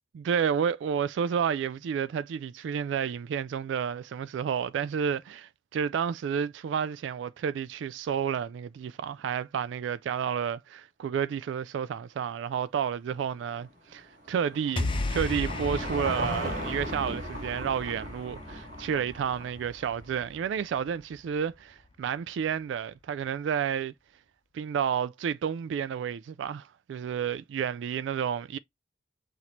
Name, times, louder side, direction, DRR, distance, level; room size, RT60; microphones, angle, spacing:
voice 1, 0.1-23.9 24.5-28.6, right 7 dB, 90° right, 0.3 m, -31 dB
Car passing by / Engine, 13.6-20.1, equal, 50° right, 3.1 m, -38 dB
sound 1, 14.8-21.2, left 2 dB, 30° left, 0.7 m, -35 dB
5.8 x 2.7 x 2.9 m
head